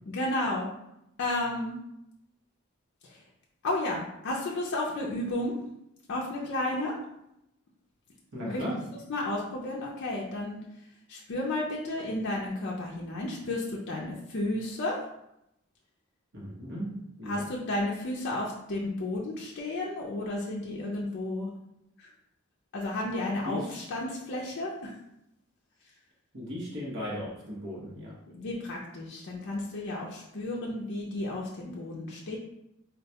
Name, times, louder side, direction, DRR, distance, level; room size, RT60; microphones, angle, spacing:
voice 1, 0.1-0.7 1.2-1.8 3.1-3.2 3.6-5.6 6.1-6.9 8.5-8.6 8.9-10.6 11.1-15.0 17.2-21.5 22.0-22.1 22.7-24.9 28.3-32.4, left 1 dB, 55° left, -3 dB, 0.5 m, -32 dB
voice 2, 8.3-8.8 16.3-16.9 17.2-17.4 23.4-23.6 26.3-28.1, equal, 60° right, -6 dB, 1.0 m, -36 dB
3.8 x 2.2 x 2.8 m, 0.83 s
head